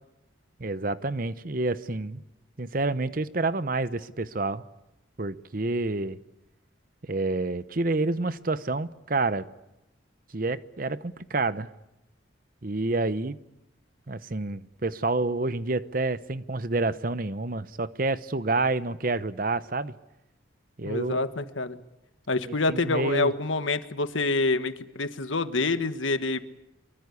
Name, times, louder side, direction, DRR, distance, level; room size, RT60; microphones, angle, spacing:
voice 1, 0.6-2.2 2.6-4.6 5.2-6.2 7.0-9.5 10.3-11.7 12.6-13.4 14.1-19.9 20.8-21.2 22.5-23.3, right 2 dB, 45° right, 0.9 m, -28 dB
voice 2, 20.8-21.8 22.3-26.4, left 3 dB, 80° left, 1.4 m, -27 dB
24.0 x 24.0 x 8.4 m
head